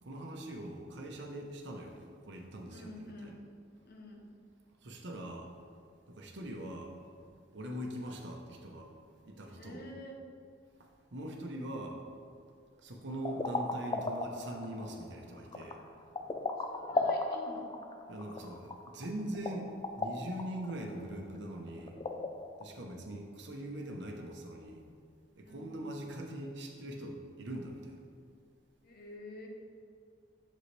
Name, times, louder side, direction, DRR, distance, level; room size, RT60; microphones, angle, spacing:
voice 1, 0.0-3.3 4.8-5.5 6.1-7.0 7.5-8.9 9.2-9.8 10.8-12.0 12.8-15.8 18.1-22.0 22.6-24.9 25.4-28.0, right 1 dB, 70° right, 1 dB, 0.9 m, -42 dB
voice 2, 2.7-3.4 3.8-4.2 9.5-10.2 16.6-17.7 25.4-25.8 28.8-29.5, left 1 dB, 55° left, 1 dB, 1.0 m, -48 dB
sound 1, 13.1-22.6, left 2 dB, 25° left, 0.4 m, -37 dB
8.0 x 6.5 x 3.3 m, 2.2 s
head